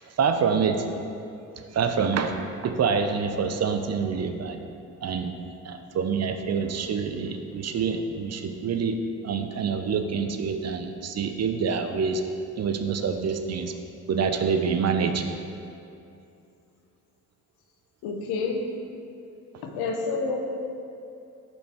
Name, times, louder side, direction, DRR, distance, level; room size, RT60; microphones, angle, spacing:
voice 1, 0.2-0.8 1.7-4.6 5.0-5.3 5.6-9.0 9.2-12.2 12.6-13.7 14.1-15.2 19.5-19.6, right 6 dB, 45° right, 7 dB, 0.6 m, -26 dB
voice 2, 18.0-18.6 19.6-20.4, left 4 dB, 85° left, 2 dB, 0.8 m, -28 dB
5.4 x 4.5 x 4.5 m, 2.6 s
supercardioid pair, 55°, 38 cm